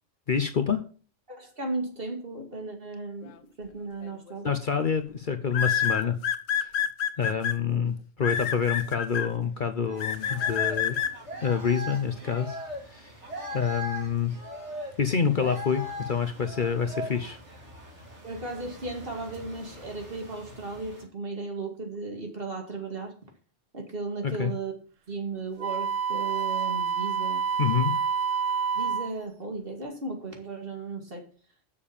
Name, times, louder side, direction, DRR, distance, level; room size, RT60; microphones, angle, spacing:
voice 1, 0.3-0.8 4.4-6.2 6.5-6.7 7.2-11.0 11.4-12.6 12.8-13.2 13.5-14.4 15.0-17.4 24.2-24.5 27.6-27.9, left 6 dB, 45° left, 9 dB, 0.8 m, -27 dB
voice 2, 1.3-3.3 3.6-4.5 7.7-7.9 18.2-23.1 23.7-24.7 25.1-27.4 28.7-31.2, right 3 dB, 45° right, 2 dB, 2.4 m, -35 dB
sound 1, 4.0-4.3 5.5-7.5 8.2-9.3 10.0-11.1, left 8 dB, 80° left, 1.2 m, -27 dB
sound 2, 9.9-21.0, left 1 dB, 65° right, 2.7 m, -40 dB
Wind instrument woodwind instrument, 25.6-29.2, right 6 dB, 80° right, 1.2 m, -28 dB
7.0 x 6.8 x 7.2 m, 0.41 s
omnidirectional pair, 1.3 m